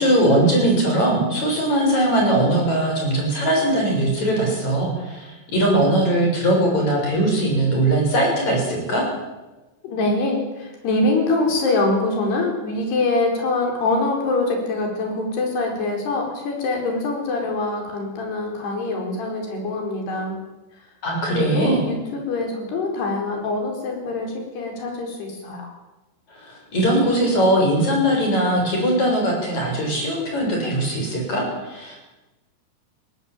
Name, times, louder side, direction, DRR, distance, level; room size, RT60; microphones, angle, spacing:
voice 1, 0.0-9.1 21.0-21.8 26.4-32.0, right 1 dB, 40° left, 0 dB, 8.1 m, -20 dB
voice 2, 9.8-20.4 21.3-25.7, left 2 dB, 65° left, 2 dB, 6.6 m, -24 dB
21.0 x 17.5 x 9.0 m, 1.1 s
omnidirectional pair, 5.1 m